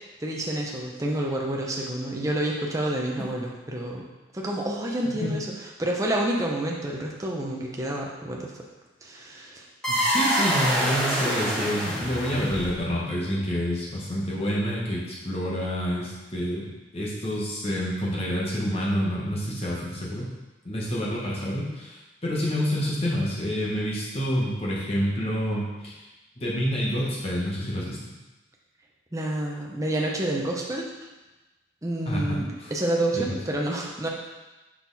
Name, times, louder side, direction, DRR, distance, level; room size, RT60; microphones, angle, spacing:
voice 1, 0.2-4.0 4.3-5.5 5.8-8.5 9.0-9.6 29.1-30.8 31.8-34.1, right 1 dB, 15° right, -1 dB, 0.8 m, -28 dB
sound 1, 9.8-13.0, equal, 5° left, 1.8 m, -26 dB
voice 2, 9.9-16.7 16.9-20.3 20.6-26.0 26.4-28.1 32.1-32.7 33.1-33.2, equal, 30° left, -5 dB, 1.4 m, -28 dB
6.0 x 4.3 x 4.1 m, 1.1 s
head